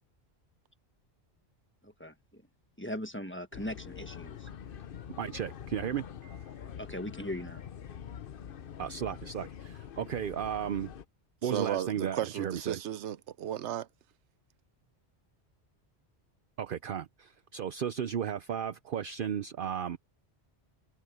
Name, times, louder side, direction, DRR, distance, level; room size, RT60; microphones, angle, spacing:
voice 1, 1.8-2.4 2.8-4.5 6.8-7.7, left 1 dB, 10° left, 1.3 m, -39 dB
sound 1, 3.5-11.0, left 8 dB, 55° left, 0.9 m, -45 dB
voice 2, 5.2-6.0 8.8-10.9 11.4-12.8 16.6-20.0, right 8 dB, 55° right, 0.8 m, -34 dB
Piano, 6.2-7.2, right 15 dB, 40° left, 3.9 m, -67 dB
voice 3, 11.4-13.9, right 11 dB, 80° right, 1.0 m, -34 dB
omnidirectional pair, 1.2 m